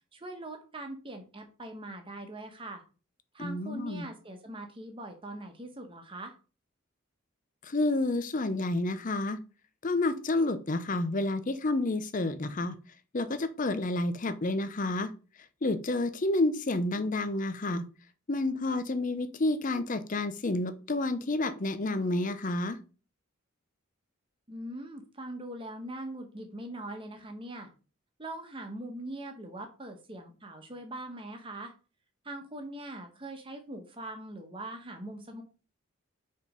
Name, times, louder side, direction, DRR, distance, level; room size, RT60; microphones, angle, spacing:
voice 1, 0.1-2.8 3.3-6.3 24.5-27.7 28.2-31.7 32.2-35.4, right 1 dB, 25° right, 4 dB, 1.2 m, -42 dB
voice 2, 3.4-4.1 7.6-9.4 9.8-12.8 13.1-15.1 15.6-17.8 18.3-22.8, left 2 dB, 40° left, 11 dB, 0.6 m, -29 dB
5.1 x 4.2 x 5.2 m, 0.35 s
head